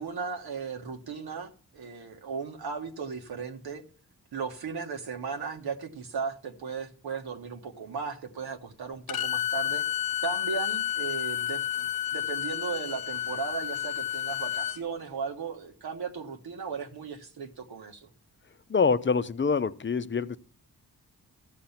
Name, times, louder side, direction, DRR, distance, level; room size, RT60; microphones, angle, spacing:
voice 1, 0.0-3.8 4.3-9.9 10.2-18.1, right 5 dB, 90° right, 1.5 m, -36 dB
Bowed string instrument, 9.1-14.8, left 11 dB, 70° left, 0.6 m, -31 dB
voice 2, 18.7-20.4, left 5 dB, 30° left, 0.6 m, -25 dB
14.0 x 7.7 x 5.7 m
cardioid pair, 60°, 37 cm